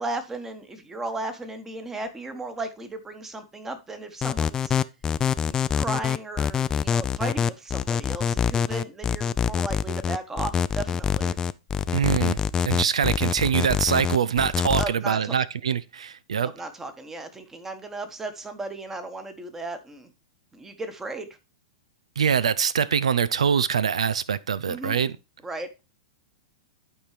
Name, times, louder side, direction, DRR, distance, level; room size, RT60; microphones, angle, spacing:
voice 1, 0.0-4.8 5.5-11.4 14.8-15.3 16.5-20.1 20.5-21.3 24.7-25.0 25.4-25.7, right 2 dB, 10° right, 1.3 m, -35 dB
sound 1, 4.2-14.8, left 7 dB, 20° left, 0.4 m, -25 dB
voice 2, 11.9-16.5 22.2-25.1, right 7 dB, 90° right, 0.5 m, -24 dB
11.5 x 4.5 x 3.3 m
hypercardioid pair, 125°, 3 cm